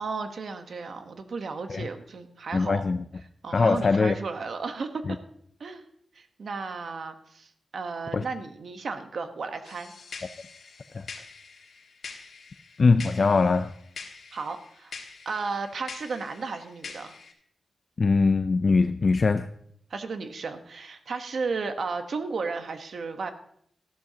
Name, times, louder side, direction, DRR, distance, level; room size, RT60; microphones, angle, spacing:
voice 1, 0.0-2.8 3.4-5.2 5.6-5.8 6.2-9.9 14.3-14.9 15.2-17.1 19.9-23.3, right 4 dB, 60° right, 7 dB, 1.1 m, -34 dB
voice 2, 2.5-3.0 3.5-4.1 5.1-5.2 8.1-8.2 10.9-11.1 12.8-13.7 18.0-19.5, left 4 dB, 45° left, 10 dB, 0.4 m, -22 dB
sound 1, 9.6-17.3, left 5 dB, 85° left, 1.8 m, -45 dB
13.5 x 12.0 x 2.8 m, 0.67 s
wide cardioid pair, 125°, 0 cm